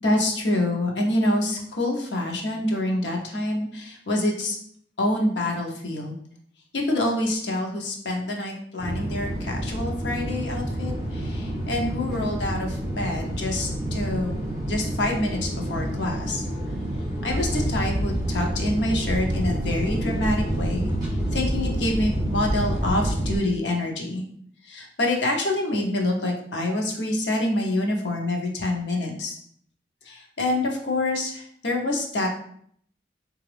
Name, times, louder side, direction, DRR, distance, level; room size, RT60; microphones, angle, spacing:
voice 1, 0.0-4.6 5.0-6.2 6.7-14.4 14.7-16.5 17.2-20.9 21.3-24.2 24.6-29.4 30.0-32.3, left 1 dB, 75° left, 0 dB, 0.8 m, -26 dB
sound 1, 8.8-23.4, right 1 dB, 25° right, 1.3 m, -28 dB
3.8 x 2.4 x 3.3 m, 0.65 s
head